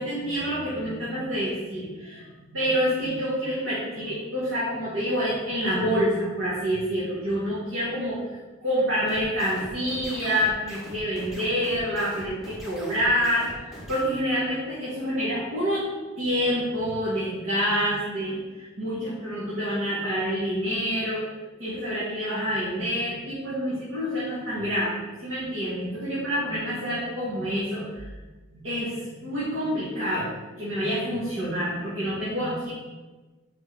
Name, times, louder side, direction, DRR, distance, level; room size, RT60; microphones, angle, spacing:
voice 1, 0.0-15.9 16.2-21.3 21.6-28.1 28.5-32.7, equal, 80° right, -10 dB, 2.1 m, -27 dB
sound 1, 9.1-14.0, equal, ahead, 1.5 m, -42 dB
5.2 x 4.6 x 4.6 m, 1.2 s
head